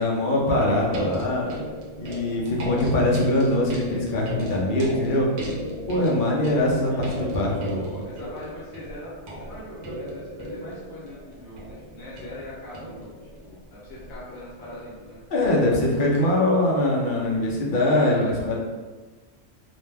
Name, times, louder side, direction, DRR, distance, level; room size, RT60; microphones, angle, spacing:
voice 1, 0.0-1.5 2.0-5.3 5.8-7.8 15.3-18.6, left 1 dB, 55° left, -3 dB, 0.6 m, -22 dB
sound 1, 0.8-16.2 17.2-17.3, right 1 dB, 85° right, 1.0 m, -37 dB
voice 2, 6.9-15.2 18.0-18.6, left 1 dB, 70° left, -8 dB, 1.0 m, -41 dB
2.5 x 2.1 x 3.2 m, 1.3 s
omnidirectional pair, 1.2 m